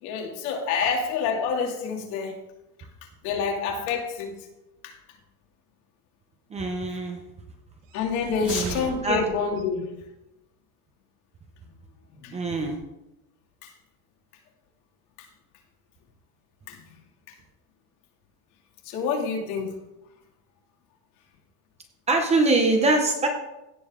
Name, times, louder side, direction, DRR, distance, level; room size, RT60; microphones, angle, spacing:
voice 1, 0.0-2.4 3.2-4.5 4.8-4.9 7.9-9.9 12.2-12.4 13.6-13.7 15.2-15.3 16.7-16.8 17.3-17.4 18.8-19.7, left 5 dB, 70° left, 1 dB, 2.5 m, -28 dB
voice 2, 6.5-7.2 8.4-9.2 12.3-12.8 22.1-23.3, right 2 dB, 15° right, 3 dB, 0.7 m, -23 dB
sound 1, 7.8-9.6, right 6 dB, 45° right, 1.2 m, -38 dB
16.0 x 6.9 x 3.6 m, 0.94 s
cardioid pair, 180°, 45 cm